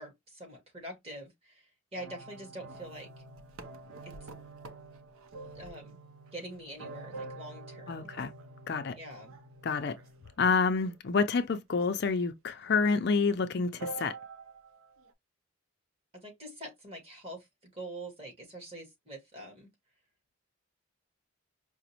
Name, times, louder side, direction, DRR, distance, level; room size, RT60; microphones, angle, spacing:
voice 1, 0.0-3.1 4.0-4.3 5.5-6.0 6.3-8.1 9.0-9.4 16.1-17.5 17.7-19.7, right 1 dB, 30° right, 1.5 m, -45 dB
sound 1, 2.0-10.4 10.8-10.9 11.8-11.9 12.6-12.7 12.9-13.2 13.8-15.1, right 3 dB, 85° right, 0.6 m, -46 dB
voice 2, 7.9-8.3 8.7-9.0 9.6-9.9 10.4-14.1, left 4 dB, 50° left, 0.4 m, -28 dB
4.9 x 2.0 x 2.9 m
head